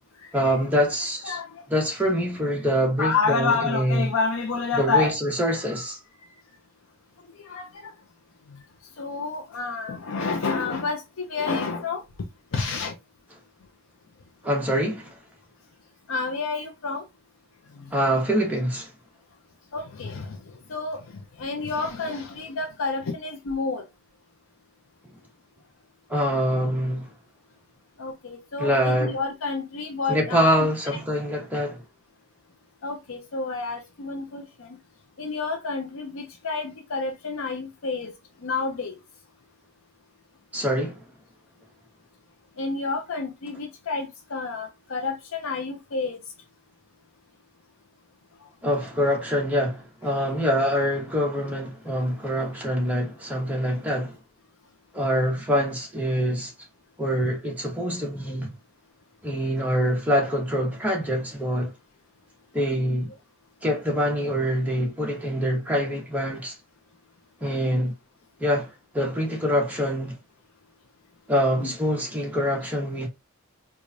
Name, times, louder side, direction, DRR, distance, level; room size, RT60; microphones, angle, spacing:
voice 1, 0.3-1.4 1.7-4.1 4.7-6.0 14.4-15.1 17.9-18.9 26.1-27.1 28.6-29.2 30.1-31.8 40.5-41.0 48.6-54.2 54.9-56.5 57.0-58.5 59.2-61.7 62.5-63.1 63.6-66.5 67.4-67.9 68.4-70.2 71.3-73.1, equal, 5° right, 1.1 m, -25 dB
voice 2, 1.2-1.6 3.0-5.2 7.4-7.9 9.0-12.0 12.5-12.9 16.1-17.0 17.8-17.9 19.7-20.4 20.7-21.0 21.4-23.8 28.0-30.5 32.8-34.7 35.2-38.1 38.4-38.9 42.6-46.2 55.5-55.6 58.3-58.4 62.7-62.8 67.6-67.8 71.6-71.7, left 4 dB, 65° left, 0.6 m, -29 dB
4.7 x 2.3 x 2.6 m
head